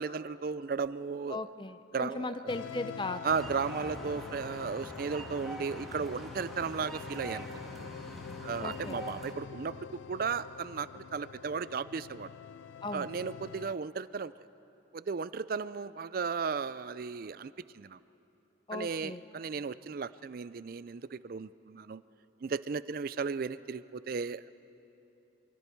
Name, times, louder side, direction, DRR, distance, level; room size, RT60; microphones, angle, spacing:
voice 1, 0.0-1.5 1.9-2.5 3.2-7.5 8.4-12.3 12.9-14.3 14.9-18.0 18.7-22.0 22.4-24.5, right 5 dB, 50° right, 16 dB, 0.4 m, -35 dB
voice 2, 1.3-3.2 8.6-9.0 12.8-13.1 18.7-19.2, left 2 dB, 25° left, 11 dB, 0.6 m, -37 dB
sound 1, 2.5-13.8, left 7 dB, 85° left, 0.4 m, -46 dB
sound 2, 3.2-9.3, right 1 dB, ahead, 1.7 m, -44 dB
28.0 x 23.5 x 4.6 m, 3.0 s
head